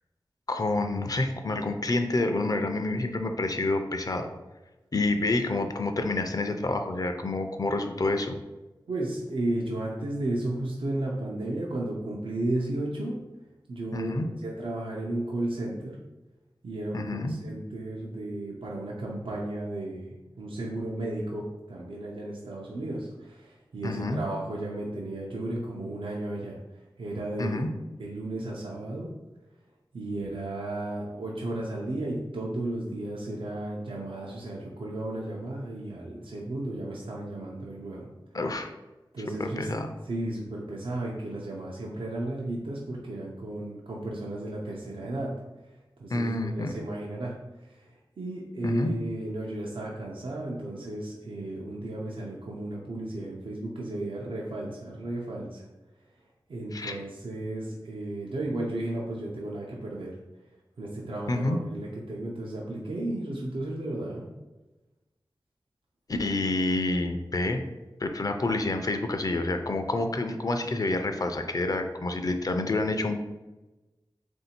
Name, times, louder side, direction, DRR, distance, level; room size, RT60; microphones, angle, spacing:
voice 1, 0.5-4.3 4.9-8.3 13.9-14.3 16.9-17.3 23.8-24.2 27.4-27.7 38.3-38.7 39.4-39.9 46.1-46.7 48.6-48.9 56.7-57.0 61.3-61.6 66.1-67.6 68.0-73.2, left 2 dB, 45° left, 6 dB, 0.4 m, -28 dB
voice 2, 8.9-13.2 13.7-14.1 14.4-16.0 16.6-26.6 27.0-27.6 28.0-29.1 29.9-38.1 39.1-39.7 40.1-45.3 46.0-47.4 47.6-47.9 48.2-55.6 56.5-60.2 60.8-64.3, right 1 dB, 85° right, -3 dB, 0.6 m, -34 dB
3.7 x 2.7 x 4.2 m, 1.1 s
wide cardioid pair, 80°, 9 cm